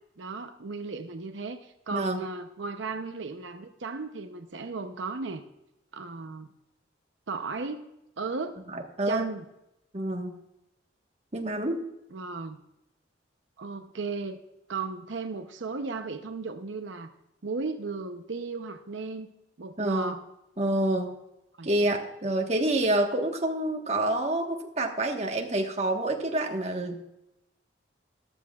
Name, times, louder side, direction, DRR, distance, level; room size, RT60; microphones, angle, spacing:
voice 1, 0.2-5.4 5.9-6.5 7.3-7.9 8.2-8.6 9.1-9.5 12.1-12.6 13.6-14.4 14.7-17.1 17.4-19.3 19.6-20.2 21.6-21.7, right 4 dB, 80° right, 7 dB, 0.7 m, -35 dB
voice 2, 8.7-9.3 9.9-10.4 11.3-11.8 19.8-20.1 20.6-21.1 21.6-27.1, right 1 dB, 35° right, 2 dB, 1.3 m, -27 dB
13.5 x 12.5 x 2.4 m, 0.87 s
head